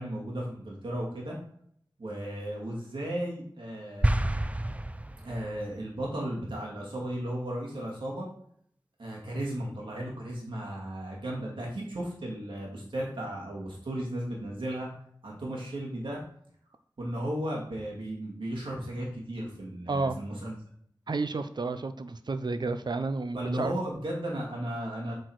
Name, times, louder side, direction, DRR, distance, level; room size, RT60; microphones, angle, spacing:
voice 1, 0.0-1.4 2.0-4.1 5.2-8.3 9.0-14.9 15.2-16.2 17.0-20.5 23.3-25.1, right 1 dB, 90° right, -3 dB, 2.4 m, -35 dB
sound 1, 4.0-5.7, right 1 dB, 15° right, 0.5 m, -28 dB
voice 2, 21.1-23.7, right 3 dB, 60° right, 10 dB, 0.7 m, -31 dB
7.8 x 4.6 x 4.7 m, 0.65 s
wide cardioid pair, 55°, 8 cm